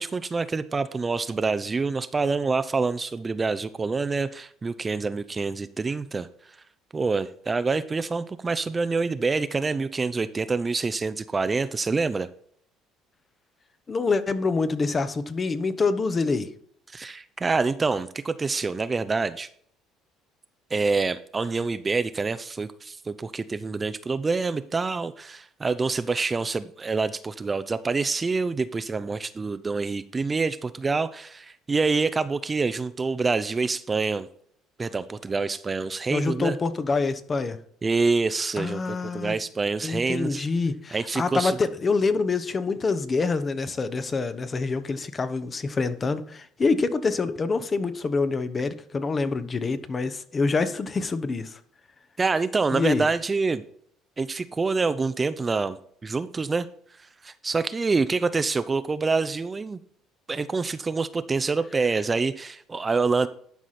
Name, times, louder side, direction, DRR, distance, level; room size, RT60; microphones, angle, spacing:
voice 1, 0.0-6.3 6.9-12.3 16.9-19.5 20.7-34.3 34.8-36.6 37.8-40.4 40.9-41.6 52.2-53.6 54.2-56.7 57.2-59.8 60.3-63.3, right 4 dB, 25° right, 13 dB, 0.5 m, -26 dB
voice 2, 13.9-16.5 36.1-37.6 38.6-39.4 39.8-51.6 52.7-53.0, left 4 dB, 30° left, 12 dB, 0.9 m, -26 dB
11.5 x 4.8 x 4.2 m, 0.63 s
supercardioid pair, 90°, 0 cm